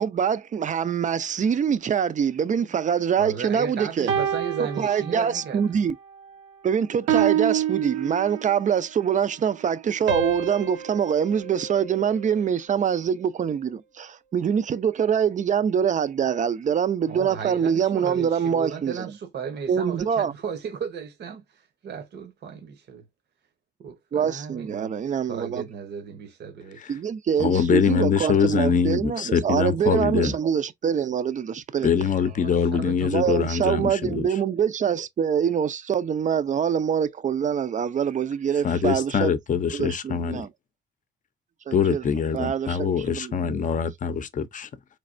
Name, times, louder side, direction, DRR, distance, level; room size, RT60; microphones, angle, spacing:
voice 1, 0.0-4.1 4.8-6.0 6.6-19.1 19.7-20.3 24.1-25.6 26.9-31.9 33.1-39.3 39.7-40.5 41.7-42.0 42.3-43.5, right 8 dB, 40° right, 0.5 m, -24 dB
voice 2, 3.2-5.7 17.1-23.0 23.8-25.0 25.3-26.9 32.2-33.5, right 6 dB, 55° right, 0.9 m, -35 dB
sound 1, 4.1-5.6 6.1-6.4 7.1-8.7 10.1-12.5, right 9 dB, 80° right, 0.9 m, -28 dB
voice 3, 27.4-30.3 31.8-34.3 38.6-40.5 41.7-44.7, left 7 dB, 40° left, 0.6 m, -23 dB
4.0 x 3.3 x 2.5 m
cardioid pair, 90°, 20 cm